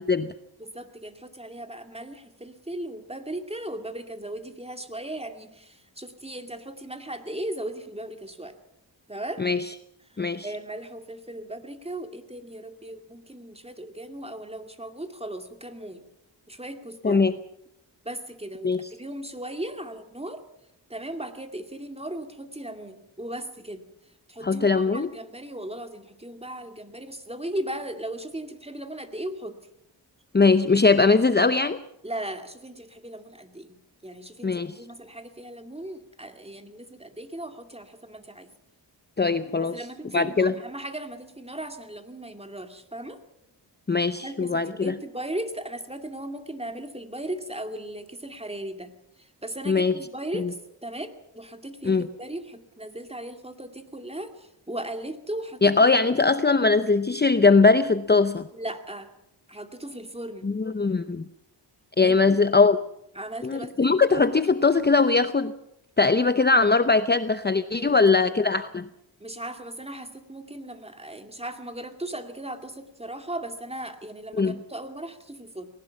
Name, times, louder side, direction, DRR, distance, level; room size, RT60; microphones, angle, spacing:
voice 1, 0.6-8.6 9.1-9.5 10.4-16.0 16.5-17.3 18.0-20.4 20.9-23.9 24.3-29.6 32.0-38.5 39.6-43.2 44.2-48.9 49.2-55.8 58.5-59.1 59.5-60.5 62.0-62.4 63.1-64.0 67.8-68.1 69.2-75.7, right 1 dB, 15° right, 7 dB, 2.3 m, -37 dB
voice 2, 24.4-25.1 30.3-31.8 34.4-34.8 39.2-39.8 40.1-40.5 43.9-45.0 49.7-49.9 50.3-50.5 51.8-52.1 55.6-58.5 60.4-61.3 62.0-62.8 63.4-65.5 66.0-68.9 74.3-74.6, left 4 dB, 25° left, 11 dB, 0.7 m, -21 dB
20.0 x 18.5 x 7.2 m, 0.80 s
wide cardioid pair, 80°, 44 cm